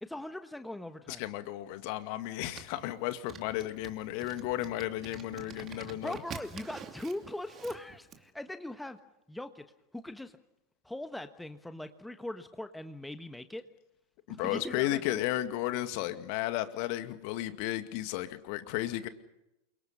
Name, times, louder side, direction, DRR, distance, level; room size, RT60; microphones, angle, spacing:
voice 1, 0.0-1.2 6.0-9.0 9.3-9.6 9.9-10.4 10.8-13.6 14.3-15.2, left 1 dB, 5° left, 9 dB, 1.3 m, -40 dB
voice 2, 1.1-6.2 14.3-19.1, left 15 dB, 45° left, 10 dB, 2.2 m, -34 dB
sound 1, 2.5-8.2, right 7 dB, 25° right, 2.7 m, -47 dB
29.0 x 24.5 x 5.6 m, 0.87 s
figure-of-eight pair, 90°, 0 cm